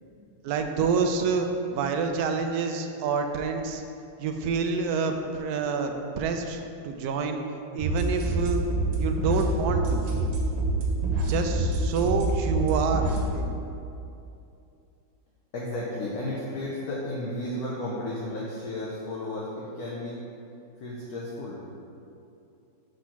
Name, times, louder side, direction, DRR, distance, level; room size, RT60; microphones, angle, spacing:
voice 1, 0.4-3.8 4.2-7.4 7.7-8.6 9.0-10.1 11.3-13.5, right 5 dB, 70° right, 5 dB, 0.9 m, -27 dB
sound 1, 7.8-13.3, right 2 dB, 90° right, 1.7 m, -26 dB
voice 2, 15.5-20.2 20.8-21.6, left 1 dB, 60° left, -5 dB, 1.2 m, -33 dB
5.1 x 4.3 x 5.7 m, 2.6 s
omnidirectional pair, 2.0 m